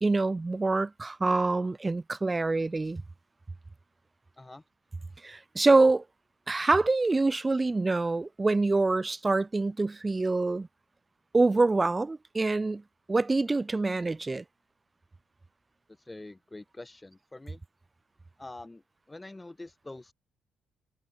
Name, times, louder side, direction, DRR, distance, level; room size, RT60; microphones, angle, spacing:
voice 1, 0.0-3.0 5.2-6.0 6.5-10.7 11.3-12.8 13.1-14.4, right 3 dB, 20° right, 0.8 m, -25 dB
voice 2, 16.0-17.6 18.4-20.1, left 2 dB, 15° left, 2.9 m, -45 dB
cardioid pair, 90°, 0 cm